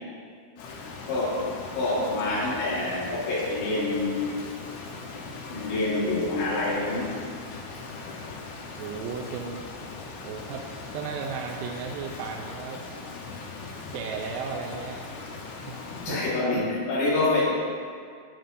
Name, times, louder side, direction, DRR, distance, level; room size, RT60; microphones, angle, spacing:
Rain, 0.6-16.4, left 3 dB, 70° left, 2.7 m, -40 dB
voice 1, 1.1-1.4 1.7-4.4 5.5-7.1 15.9-17.4, left 2 dB, 85° left, -7 dB, 4.2 m, -26 dB
voice 2, 8.8-9.6 10.2-12.8 13.9-15.1 15.7-16.2, right 5 dB, 85° right, 0 dB, 2.9 m, -35 dB
15.0 x 9.2 x 2.7 m, 2.1 s
omnidirectional pair, 5.0 m